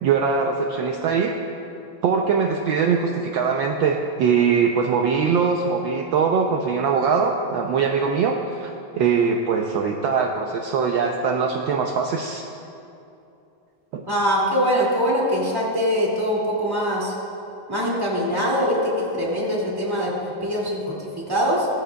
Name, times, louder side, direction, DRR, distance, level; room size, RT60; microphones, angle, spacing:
voice 1, 0.0-1.3 2.0-12.5 13.9-14.0, right 5 dB, 70° right, 2 dB, 1.3 m, -22 dB
voice 2, 14.1-17.1 17.7-21.7, equal, 10° right, -4 dB, 2.1 m, -23 dB
17.5 x 13.5 x 2.3 m, 2.7 s
omnidirectional pair, 2.3 m